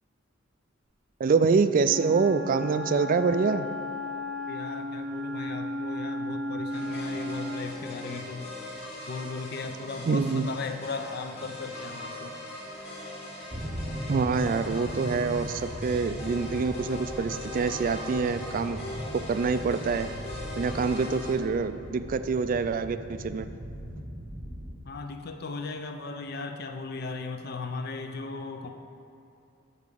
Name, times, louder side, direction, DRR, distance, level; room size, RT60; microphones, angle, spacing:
voice 1, 1.2-3.7 10.1-10.5 14.1-18.8 19.1-20.1 20.6-23.5, right 4 dB, 40° right, 11 dB, 0.3 m, -26 dB
Wind instrument woodwind instrument, 1.8-7.8, left 1 dB, 80° right, 0.7 m, -34 dB
voice 2, 4.5-8.5 9.1-12.3 24.8-28.7, left 4 dB, 50° left, 6 dB, 0.6 m, -37 dB
sound 1, 6.7-21.3, left 1 dB, 30° left, 1.9 m, -40 dB
sound 2, 13.5-24.8, equal, 20° right, 0.8 m, -39 dB
8.3 x 4.0 x 6.8 m, 2.7 s
head